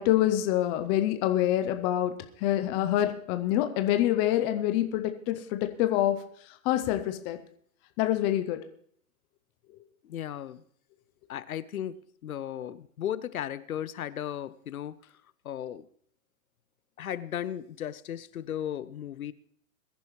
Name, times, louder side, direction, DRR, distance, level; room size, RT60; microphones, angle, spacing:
voice 1, 0.0-2.1 2.4-6.2 6.7-7.4 8.0-8.6, left 13 dB, 15° left, 7 dB, 0.4 m, -26 dB
voice 2, 10.0-10.6 11.3-15.0 15.4-15.9 17.0-19.3, left 10 dB, 75° left, 16 dB, 0.9 m, -36 dB
21.5 x 10.5 x 3.1 m, 0.62 s
hypercardioid pair, 125°, 43 cm